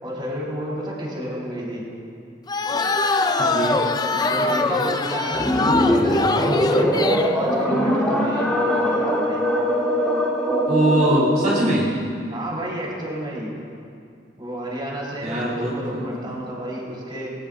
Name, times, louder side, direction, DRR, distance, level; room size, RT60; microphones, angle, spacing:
voice 1, 0.0-1.8 3.6-3.9 4.2-9.4 12.3-13.5 14.4-17.3, right 1 dB, 30° right, -4 dB, 4.1 m, -31 dB
sound 1, 2.5-7.3, left 3 dB, 20° left, 0.5 m, -23 dB
voice 2, 3.4-3.8 10.7-11.9 15.2-16.3, right 1 dB, 50° right, -7 dB, 3.0 m, -22 dB
sound 2, 5.3-11.8, equal, 5° left, 3.1 m, -21 dB
22.0 x 17.5 x 2.5 m, 2.4 s
head